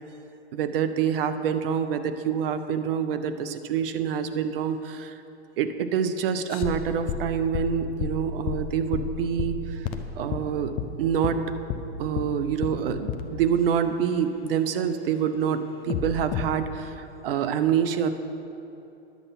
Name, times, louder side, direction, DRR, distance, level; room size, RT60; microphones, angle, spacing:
voice 1, 0.5-5.1 5.6-9.9 10.2-10.7 11.0-11.4 12.0-17.0 17.2-18.2, right 8 dB, 55° right, 10 dB, 0.8 m, -26 dB
sound 1, 6.5-10.5 10.8-10.9 11.2-11.4 11.7-11.8 12.2-12.3 12.6-12.8 13.1-13.3 15.9-16.5, left 8 dB, 15° left, 0.3 m, -30 dB
10.5 x 7.8 x 5.9 m, 2.9 s
hypercardioid pair, 135°, 33 cm